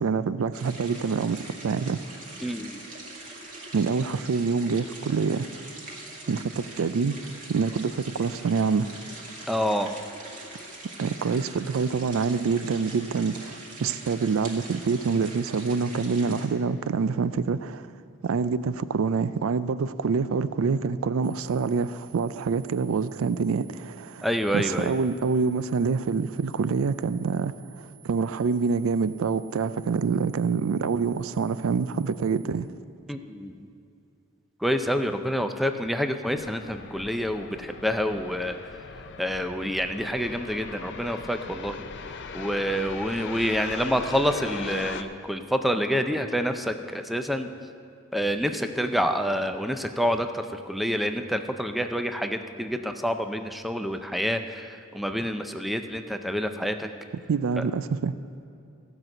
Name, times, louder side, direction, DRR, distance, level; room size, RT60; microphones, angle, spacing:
voice 1, 0.0-1.4 1.6-2.0 3.7-5.5 6.3-7.2 7.5-8.9 11.0-17.9 18.2-24.3 24.5-32.7 57.3-58.1, right 5 dB, 70° right, 0.4 m, -26 dB
sound 1, 0.5-16.5, right 2 dB, 40° right, 2.0 m, -43 dB
voice 2, 2.4-2.8 9.5-9.9 24.2-25.0 33.1-33.5 34.6-38.6 39.2-47.5 48.1-56.9 57.6-57.7, equal, ahead, 0.4 m, -28 dB
sound 2, 21.2-32.4, right 10 dB, 90° right, 1.0 m, -55 dB
sound 3, 36.3-45.0, left 5 dB, 55° left, 0.6 m, -39 dB
15.0 x 6.0 x 7.7 m
head